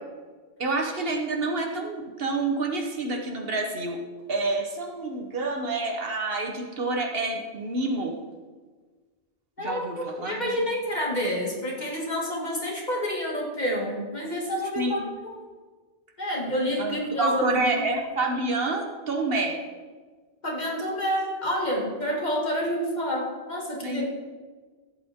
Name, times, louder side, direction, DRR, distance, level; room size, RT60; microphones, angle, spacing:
voice 1, 0.6-4.0 4.3-8.1 9.6-10.5 14.8-15.0 16.8-19.6 23.8-24.1, right 2 dB, 60° right, 2 dB, 1.4 m, -28 dB
voice 2, 9.6-15.4 16.2-17.8 20.4-24.1, equal, 40° left, -3 dB, 2.3 m, -28 dB
15.0 x 8.4 x 3.6 m, 1.4 s
omnidirectional pair, 1.1 m